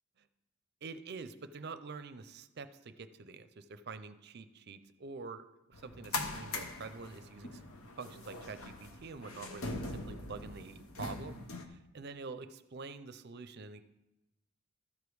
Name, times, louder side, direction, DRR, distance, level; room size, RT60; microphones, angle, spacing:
voice 1, 0.8-7.6 8.0-11.4 11.7-13.8, right 4 dB, 50° right, 12 dB, 0.5 m, -46 dB
sound 1, 5.7-11.6, left 2 dB, 85° left, 0.9 m, -42 dB
13.5 x 5.1 x 4.7 m, 0.93 s
head